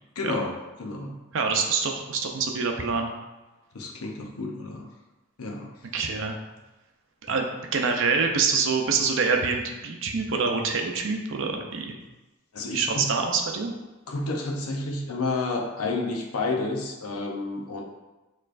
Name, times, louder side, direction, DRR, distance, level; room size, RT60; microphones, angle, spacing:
voice 1, 0.2-1.2 3.7-4.9 5.4-5.7 12.5-13.1 14.1-17.8, left 3 dB, 85° left, 1 dB, 0.8 m, -30 dB
voice 2, 1.3-3.1 5.9-6.3 7.3-7.5 7.7-12.0 12.7-13.7, right 5 dB, 60° right, 3 dB, 0.6 m, -25 dB
6.6 x 3.2 x 2.5 m, 1.1 s
head